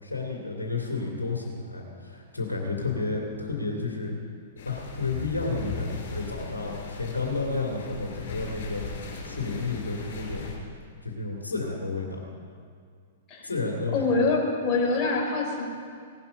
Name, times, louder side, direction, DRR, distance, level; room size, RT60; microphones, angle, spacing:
voice 1, 0.0-4.1 4.6-10.5 11.0-12.2 13.4-14.0, left 3 dB, 85° left, -1 dB, 2.5 m, -31 dB
sound 1, 4.6-10.5, left 4 dB, 55° left, 4.8 m, -38 dB
voice 2, 13.9-15.6, left 3 dB, 30° left, -2 dB, 4.2 m, -25 dB
18.0 x 11.5 x 5.4 m, 2.1 s
figure-of-eight pair, 110°, 0 cm